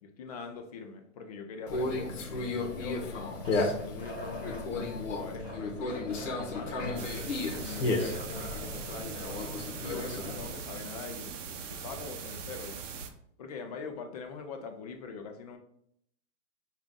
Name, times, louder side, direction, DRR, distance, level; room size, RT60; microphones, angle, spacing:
voice 1, 0.0-3.2 3.8-7.1 7.6-12.8 13.4-15.6, left 4 dB, 30° left, 5 dB, 0.5 m, -43 dB
Conversation, 1.7-10.5, left 3 dB, 75° left, 1.1 m, -34 dB
sound 1, 2.7-4.6 5.3-9.0 9.3-9.4 9.7-10.5 12.0-12.1, left 1 dB, 15° right, 0.9 m, -46 dB
sound 2, 7.0-13.1, right 6 dB, 75° right, 0.8 m, -41 dB
5.5 x 2.5 x 3.5 m, 0.69 s
hypercardioid pair, 160°, 38 cm